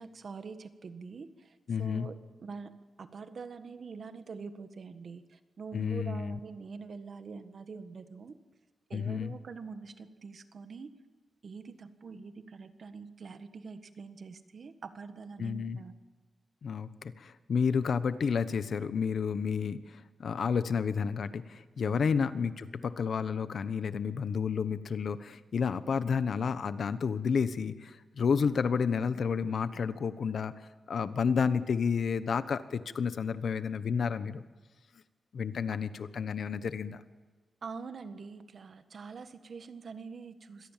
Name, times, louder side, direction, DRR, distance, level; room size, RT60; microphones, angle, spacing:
voice 1, 0.0-2.1 2.4-8.4 8.9-11.0 11.4-16.0 21.8-22.1 37.6-40.7, right 5 dB, 60° right, 10 dB, 1.6 m, -45 dB
voice 2, 1.7-2.1 5.7-6.4 8.9-9.3 15.4-15.8 16.6-30.5 30.9-34.4 35.3-37.0, left 6 dB, 65° left, 13 dB, 1.1 m, -31 dB
25.0 x 18.0 x 7.5 m, 1.3 s
wide cardioid pair, 105°, 0 cm